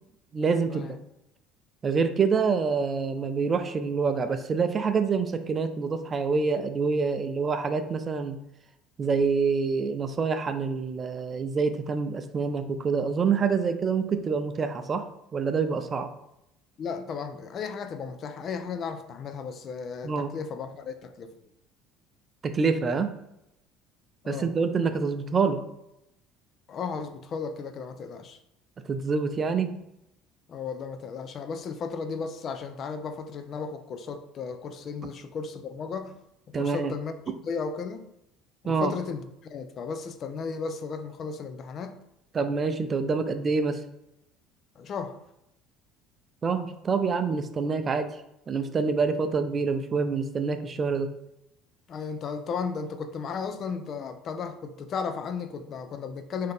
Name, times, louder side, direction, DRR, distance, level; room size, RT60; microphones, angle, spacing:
voice 1, 0.3-1.0 1.8-8.4 9.0-15.1 15.3-16.1 20.0-20.3 22.4-23.1 24.3-25.6 28.9-29.7 36.5-36.9 38.6-38.9 42.3-43.8 46.4-48.2 48.5-51.1, right 5 dB, 35° right, 0.4 m, -26 dB
voice 2, 16.8-21.3 24.2-24.5 26.7-28.4 30.5-36.2 36.5-38.1 38.6-42.0 44.8-45.2 51.9-56.5, left 5 dB, 45° left, 0.4 m, -35 dB
3.8 x 2.7 x 3.3 m
hypercardioid pair, 65°, 0 cm